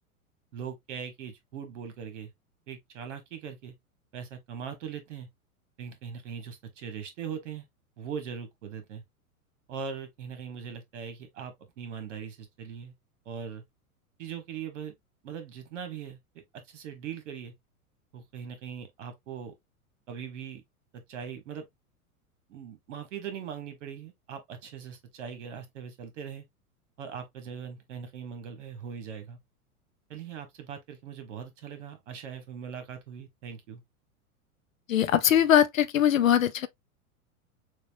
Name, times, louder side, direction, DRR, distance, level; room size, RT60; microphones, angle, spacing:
voice 1, 0.5-2.3 2.7-3.7 4.1-5.3 5.8-7.7 8.0-9.0 9.7-12.9 13.2-13.6 14.2-14.9 15.2-17.5 18.1-19.5 20.1-20.6 20.9-21.6 22.5-26.4 27.0-29.4 30.1-33.8, right 7 dB, 55° right, 1.5 m, -40 dB
voice 2, 34.9-36.7, left 10 dB, 65° left, 0.7 m, -21 dB
6.7 x 2.6 x 2.6 m
figure-of-eight pair, 95°, 44 cm